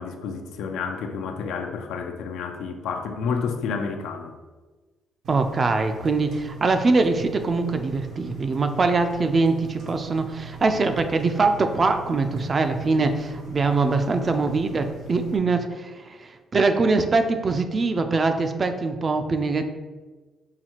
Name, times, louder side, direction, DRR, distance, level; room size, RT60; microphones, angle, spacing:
voice 1, 0.0-4.3, left 5 dB, 85° left, 5 dB, 0.4 m, -30 dB
Engine, 5.2-15.4, right 4 dB, 80° right, 1.0 m, -42 dB
voice 2, 5.3-19.7, right 3 dB, 40° right, 7 dB, 0.4 m, -23 dB
5.7 x 2.3 x 2.9 m, 1.3 s
cardioid pair, 90°, 0 cm